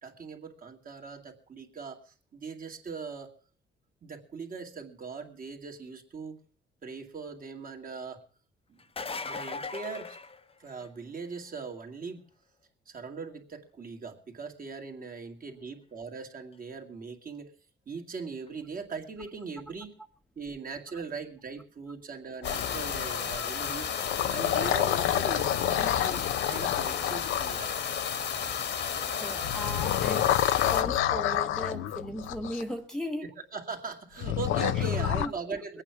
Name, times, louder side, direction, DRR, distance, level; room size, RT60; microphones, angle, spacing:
voice 1, 0.0-3.3 4.0-6.4 6.8-8.2 8.7-8.8 9.2-10.2 10.6-12.2 12.9-17.5 17.9-19.9 20.4-23.9 24.3-26.2 26.5-27.7 33.5-35.8, right 5 dB, 45° right, 3 dB, 2.3 m, -40 dB
sound 1, 8.8-11.0 16.5-16.6 18.5-18.6, left 4 dB, 30° left, 1.0 m, -38 dB
sound 2, 22.4-23.4 23.9-28.1 29.4-32.6 34.2-35.3, left 11 dB, 85° left, 0.7 m, -29 dB
sound 3, 22.4-30.8, left 7 dB, 65° left, 1.7 m, -33 dB
voice 2, 23.4-23.7 29.2-30.3 30.7-33.3 34.7-34.9 35.2-35.6, equal, 5° left, 4 dB, 1.1 m, -37 dB
21.5 x 8.9 x 5.8 m, 0.42 s
cardioid pair, 90°, 20 cm